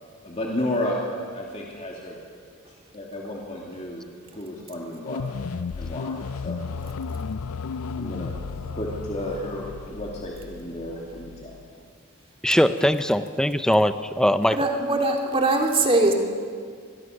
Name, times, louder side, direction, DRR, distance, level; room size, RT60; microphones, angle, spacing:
voice 1, 0.2-1.0 1.2-2.2 2.9-4.0 4.3-5.2 5.7-6.6 7.9-8.3 8.8-11.5, left 1 dB, 30° left, -3 dB, 2.7 m, -32 dB
sound 1, 5.0-11.7, left 5 dB, 85° left, 0.5 m, -34 dB
voice 2, 12.4-14.6, equal, 5° left, 10 dB, 0.6 m, -21 dB
voice 3, 14.5-16.1, right 2 dB, 25° right, 1 dB, 2.6 m, -21 dB
24.0 x 21.5 x 6.7 m, 2.1 s
head